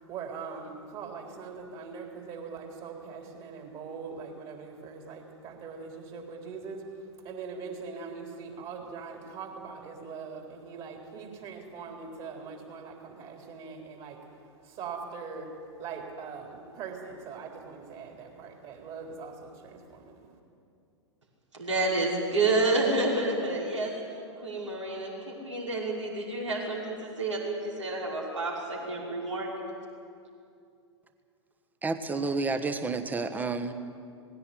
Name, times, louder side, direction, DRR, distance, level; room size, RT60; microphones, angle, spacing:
voice 1, 0.0-20.3, right 5 dB, 35° right, 2 dB, 3.9 m, -42 dB
voice 2, 21.6-23.9 24.4-29.5, right 2 dB, 80° right, -3 dB, 5.8 m, -29 dB
voice 3, 31.8-33.7, right 3 dB, 10° right, 9 dB, 1.2 m, -30 dB
19.0 x 17.0 x 9.9 m, 2.4 s
figure-of-eight pair, 100°, 16 cm